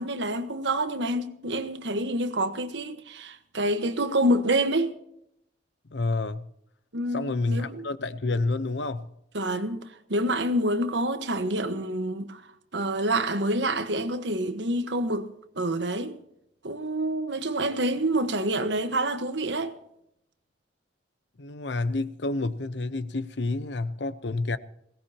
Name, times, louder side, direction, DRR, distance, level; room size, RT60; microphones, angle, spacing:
voice 1, 0.0-4.9 6.9-7.9 9.3-12.4 12.7-16.2 16.6-19.7, right 1 dB, 75° right, 1.3 m, -27 dB
voice 2, 5.9-6.5 7.1-9.1 21.4-24.6, left 3 dB, 70° left, 0.8 m, -29 dB
21.0 x 17.5 x 2.9 m
head